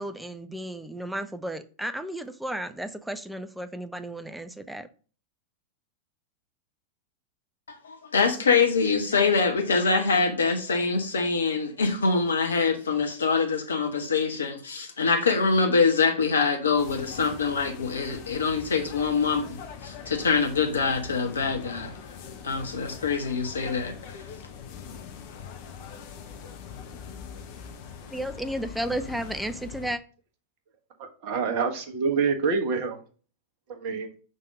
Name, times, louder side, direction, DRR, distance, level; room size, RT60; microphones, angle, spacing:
voice 1, 0.0-4.9 28.1-30.0, right 1 dB, 5° right, 0.6 m, -33 dB
voice 2, 7.7-21.9 22.4-24.2, left 4 dB, 70° left, 1.2 m, -24 dB
sound 1, 16.8-29.9, left 7 dB, 45° left, 0.9 m, -42 dB
voice 3, 31.2-33.0 33.7-34.1, right 5 dB, 45° right, 1.3 m, -26 dB
5.4 x 4.1 x 5.1 m
figure-of-eight pair, 90°, 0 cm